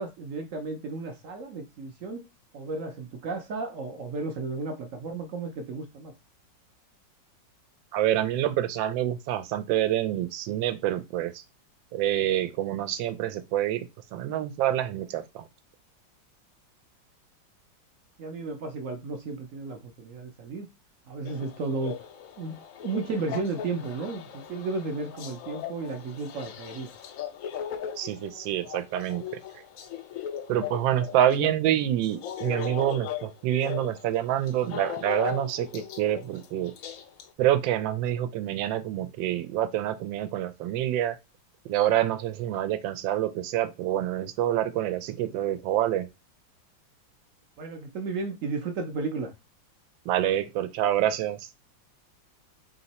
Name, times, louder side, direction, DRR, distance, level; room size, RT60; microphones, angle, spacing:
voice 1, 0.0-2.2 2.5-6.1 18.2-20.7 21.1-22.0 22.4-26.9 47.6-49.3, right 3 dB, 65° right, 0.8 m, -33 dB
voice 2, 7.9-11.4 11.9-13.8 14.1-15.5 28.0-29.2 30.5-36.7 37.4-41.2 41.6-46.1 50.1-51.5, right 12 dB, 85° right, 1.3 m, -27 dB
sound 1, 21.3-31.6 32.0-37.3, left 9 dB, 85° left, 0.7 m, -38 dB
3.6 x 2.9 x 4.1 m
omnidirectional pair, 2.0 m